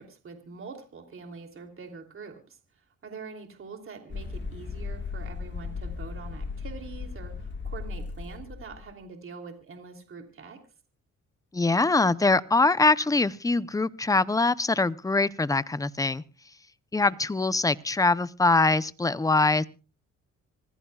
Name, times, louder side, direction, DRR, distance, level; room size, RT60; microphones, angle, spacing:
voice 1, 0.0-2.6 3.0-10.6 17.0-17.1, right 4 dB, 45° right, 4 dB, 3.1 m, -44 dB
sound 1, 4.1-8.9, left 4 dB, 40° left, 1.7 m, -36 dB
voice 2, 11.5-16.2 16.9-19.6, left 3 dB, 10° left, 16 dB, 0.6 m, -23 dB
26.0 x 15.5 x 2.4 m, 0.33 s
cardioid pair, 90°, 30 cm